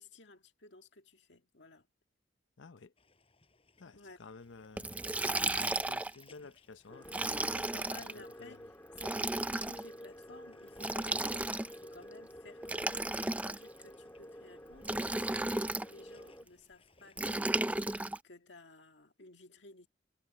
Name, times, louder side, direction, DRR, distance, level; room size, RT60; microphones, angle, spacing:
voice 1, 0.0-1.9 3.9-4.2 7.5-17.7 18.2-19.9, left 2 dB, 70° left, 2.1 m, -55 dB
voice 2, 2.6-2.9 3.8-8.6, left 4 dB, 85° left, 0.7 m, -53 dB
sound 1, 3.0-17.6, left 3 dB, 30° left, 4.8 m, -67 dB
Liquid, 4.8-6.2 7.0-8.1 8.9-9.8 10.8-11.9 12.6-13.8 14.8-15.9 17.2-18.2, right 2 dB, 10° right, 0.4 m, -34 dB
sound 2, 6.9-16.4, equal, 15° left, 2.0 m, -51 dB
head